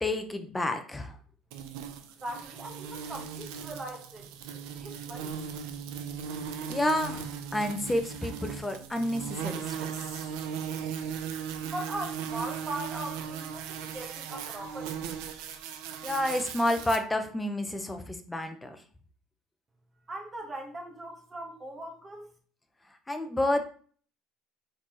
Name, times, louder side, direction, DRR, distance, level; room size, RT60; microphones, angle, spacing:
voice 1, 0.0-1.1 6.7-9.9 16.0-18.8 23.1-23.6, left 1 dB, 10° left, 7 dB, 0.6 m, -30 dB
sound 1, 1.5-17.0, right 7 dB, 75° right, 0.6 m, -38 dB
voice 2, 2.2-5.4 11.6-15.1 20.1-22.3, right 1 dB, 25° right, 2 dB, 1.3 m, -40 dB
4.3 x 4.0 x 3.0 m, 0.43 s
supercardioid pair, 115°, 0 cm